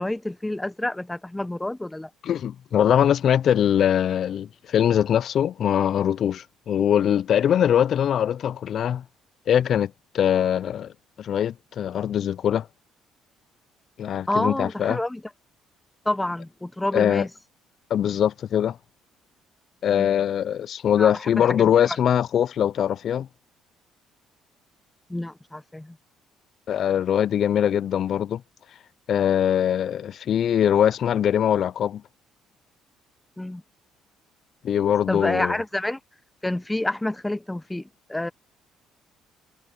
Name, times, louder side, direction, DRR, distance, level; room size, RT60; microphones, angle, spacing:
voice 1, 0.0-2.1 14.3-15.2 16.0-17.3 19.9-20.2 21.0-21.7 25.1-26.0 33.4-33.6 35.1-36.0 36.4-38.3, left 1 dB, 10° left, 0.9 m, -28 dB
voice 2, 2.2-9.0 9.5-12.7 14.0-15.0 16.9-17.2 17.9-18.8 19.8-23.3 26.7-28.4 29.1-32.0 34.6-35.6, left 9 dB, 55° left, 0.4 m, -22 dB
cardioid pair, 100°, 0 cm